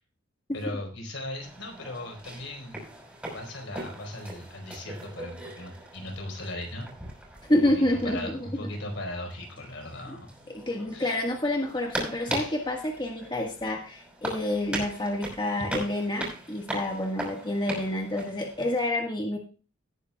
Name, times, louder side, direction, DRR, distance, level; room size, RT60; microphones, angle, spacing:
voice 1, 0.5-2.8 3.3-6.9 7.5-10.3 10.9-11.2 12.3-12.6, left 1 dB, 75° left, 2 dB, 4.3 m, -38 dB
sound 1, 1.4-18.9, right 1 dB, 5° right, 5.5 m, -40 dB
voice 2, 7.4-8.4 10.1-10.2 10.6-19.4, left 1 dB, 25° left, 1 dB, 1.6 m, -28 dB
18.0 x 9.9 x 2.3 m, 0.33 s
head